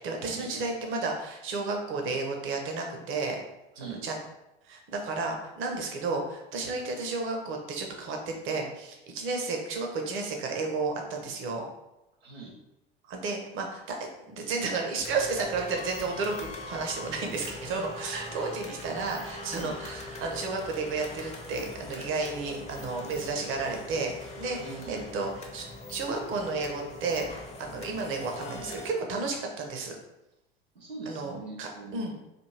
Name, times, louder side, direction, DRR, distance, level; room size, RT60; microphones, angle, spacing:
voice 1, 0.0-3.4 3.8-4.2 4.7-11.7 13.1-14.0 14.3-27.3 27.6-30.0 31.1-32.1, right 3 dB, 40° right, 2 dB, 1.0 m, -32 dB
voice 2, 3.7-4.0 12.2-12.5 18.3-18.4 19.5-19.8 24.5-25.1 30.7-32.1, right 4 dB, 85° right, -5 dB, 0.8 m, -42 dB
sound 1, 15.0-28.9, left 2 dB, 20° left, 0.7 m, -42 dB
4.2 x 2.6 x 3.2 m, 0.91 s
figure-of-eight pair, 75°, 30 cm